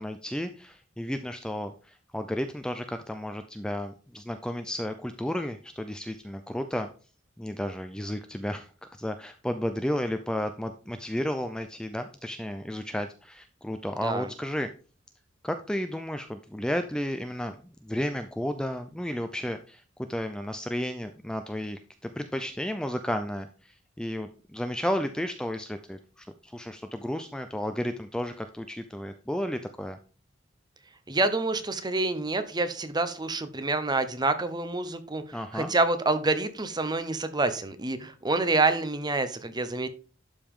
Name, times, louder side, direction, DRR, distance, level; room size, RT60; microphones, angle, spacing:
voice 1, 0.0-6.9 7.4-8.7 9.0-14.7 15.4-17.6 17.8-19.8 20.1-30.0 35.3-35.7, equal, 5° left, 7 dB, 0.4 m, -33 dB
voice 2, 31.1-39.9, right 2 dB, 20° right, 10 dB, 0.8 m, -27 dB
11.5 x 5.1 x 3.7 m, 0.37 s
head